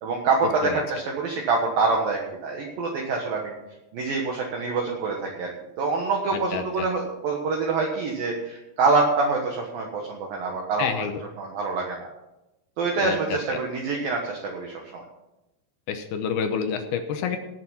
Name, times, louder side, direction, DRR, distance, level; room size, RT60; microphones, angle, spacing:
voice 1, 0.0-3.5 3.9-5.5 5.8-11.1 11.4-12.0 12.8-15.0, right 4 dB, 65° right, 0 dB, 2.6 m, -26 dB
voice 2, 6.5-6.9 10.8-11.2 13.0-13.2 15.9-17.4, left 7 dB, 75° left, 6 dB, 2.4 m, -28 dB
18.0 x 6.7 x 5.6 m, 0.96 s
omnidirectional pair, 5.3 m